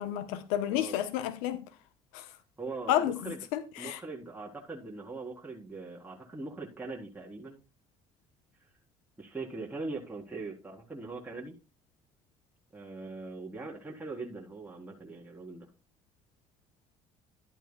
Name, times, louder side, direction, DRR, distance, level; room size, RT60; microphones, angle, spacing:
voice 1, 0.0-1.6 2.1-2.3 2.9-4.0, left 11 dB, 85° left, 1.0 m, -31 dB
voice 2, 0.7-1.0 2.6-3.4 3.8-7.6 9.2-11.5 12.7-15.7, right 3 dB, 15° right, 3.8 m, -41 dB
13.0 x 8.9 x 2.3 m
supercardioid pair, 70°, 14 cm